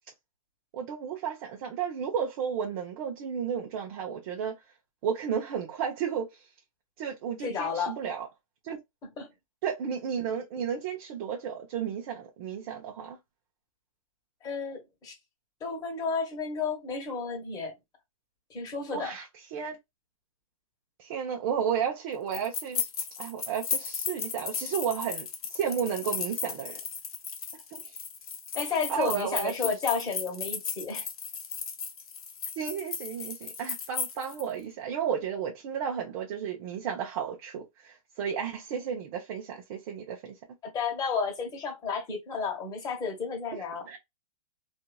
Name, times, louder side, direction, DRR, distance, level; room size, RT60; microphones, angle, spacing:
voice 1, 0.7-4.6 5.0-6.5 7.0-8.3 8.6-8.8 9.6-13.2 18.9-19.8 21.0-22.8 23.2-26.8 27.7-28.0 28.9-29.5 32.6-40.4 43.5-44.0, right 7 dB, 45° right, 0.7 m, -33 dB
voice 2, 7.4-8.0 9.2-9.3 14.4-15.1 15.6-17.7 18.5-19.1 28.5-31.1 40.7-43.9, left 5 dB, 20° left, 1.2 m, -32 dB
sound 1, 22.3-34.4, left 6 dB, 80° left, 0.7 m, -35 dB
2.7 x 2.5 x 2.2 m
hypercardioid pair, 135°, 18 cm